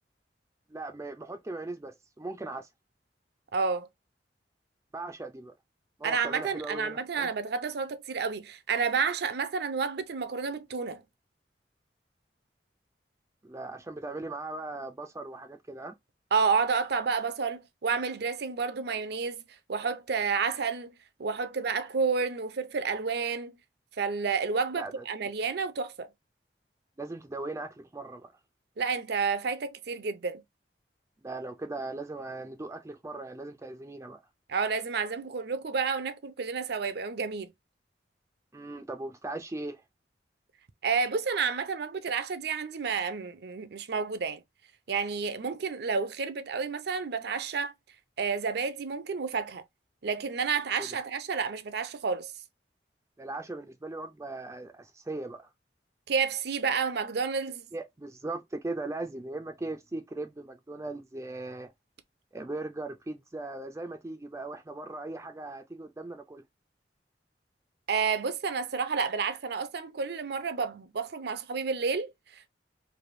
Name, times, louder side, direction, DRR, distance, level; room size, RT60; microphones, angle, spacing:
voice 1, 0.7-2.7 4.9-5.5 6.0-7.3 13.4-15.9 24.8-25.0 27.0-28.3 31.2-34.2 38.5-39.8 50.8-51.0 53.2-55.4 57.7-61.7 62.3-66.4, right 2 dB, 15° right, 0.4 m, -38 dB
voice 2, 3.5-3.9 6.0-11.0 16.3-19.4 19.7-20.9 21.2-23.6 24.0-26.1 28.8-30.4 34.5-37.5 40.8-44.4 44.9-47.7 48.2-49.6 50.0-52.3 56.1-57.7 67.9-72.5, right 5 dB, 65° right, 0.5 m, -30 dB
3.3 x 2.6 x 2.5 m
head